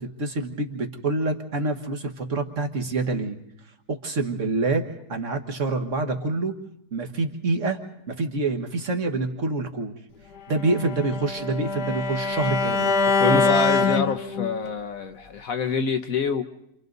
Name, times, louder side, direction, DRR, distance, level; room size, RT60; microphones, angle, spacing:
voice 1, 0.0-3.4 3.9-6.6 6.9-7.8 8.1-9.9 10.5-12.9 13.2-13.4, right 3 dB, 50° right, 4 dB, 1.9 m, -26 dB
Bowed string instrument, 10.5-14.7, left 4 dB, 80° left, 1.8 m, -24 dB
voice 2, 13.2-16.4, left 5 dB, 60° left, 7 dB, 1.5 m, -26 dB
29.5 x 27.0 x 4.0 m, 0.79 s
omnidirectional pair, 1.7 m